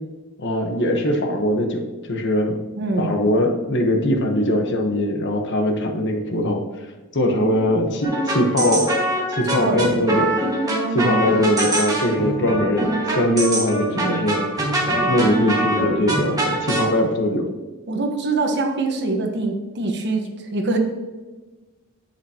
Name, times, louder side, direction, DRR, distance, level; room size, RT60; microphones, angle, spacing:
voice 1, 0.4-1.8 2.1-2.6 3.0-6.6 7.1-8.9 9.3-10.4 10.9-14.4 15.1-17.5, left 1 dB, 55° left, 3 dB, 1.2 m, -21 dB
voice 2, 2.8-3.2 7.2-8.0 9.5-9.8 10.6-11.0 13.9-14.2 17.9-20.8, right 3 dB, 50° right, 3 dB, 1.3 m, -25 dB
sound 1, 8.0-16.9, right 1 dB, 15° right, 1.7 m, -23 dB
10.5 x 8.1 x 2.9 m, 1.3 s
head